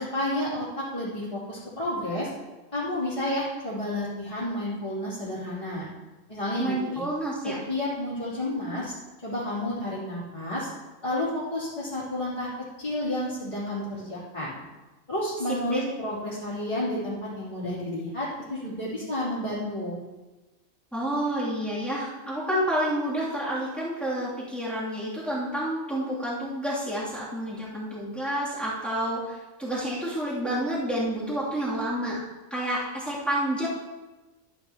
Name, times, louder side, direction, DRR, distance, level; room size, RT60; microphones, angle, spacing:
voice 1, 0.0-2.3 2.7-5.9 6.3-7.0 7.4-8.9 9.2-10.7 11.0-12.5 12.8-14.6 15.1-20.0, left 1 dB, 25° left, -12 dB, 3.2 m, -31 dB
voice 2, 6.6-7.6 15.5-15.8 20.9-32.2 32.5-33.7, right 1 dB, ahead, -9 dB, 3.0 m, -29 dB
12.5 x 10.0 x 3.0 m, 1.2 s
omnidirectional pair, 1.4 m